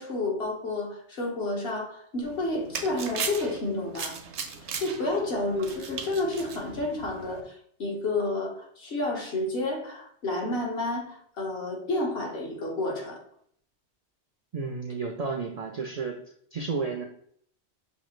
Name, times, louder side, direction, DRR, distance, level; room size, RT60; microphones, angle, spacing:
voice 1, 0.0-4.2 4.6-13.2, left 2 dB, 65° left, -1 dB, 1.3 m, -30 dB
sound 1, 2.2-7.4, right 6 dB, 80° right, 0.9 m, -38 dB
voice 2, 14.5-16.2 16.5-17.0, right 4 dB, 60° right, 2 dB, 0.4 m, -32 dB
6.0 x 2.4 x 3.1 m, 0.64 s
omnidirectional pair, 1.1 m